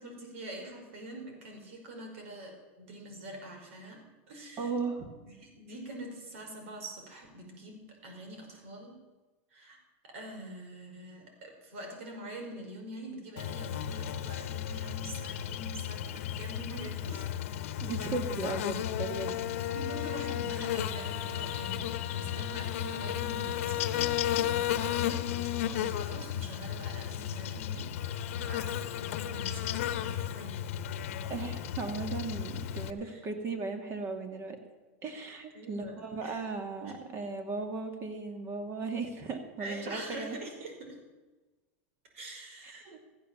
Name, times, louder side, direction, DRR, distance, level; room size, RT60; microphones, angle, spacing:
voice 1, 0.0-9.0 9.5-9.8 10.0-17.3 19.7-23.8 24.3-30.6 33.0-33.2 35.5-36.4 36.8-37.0 39.6-41.0 42.1-43.0, right 1 dB, 80° right, 2 dB, 5.3 m, -45 dB
voice 2, 4.6-5.1 17.8-19.4 31.3-34.6 35.0-40.4, right 4 dB, 35° right, 6 dB, 2.4 m, -36 dB
Buzz, 13.4-32.9, left 10 dB, 75° left, 1.0 m, -34 dB
14.5 x 10.5 x 7.1 m, 1.2 s
supercardioid pair, 130°, 7 cm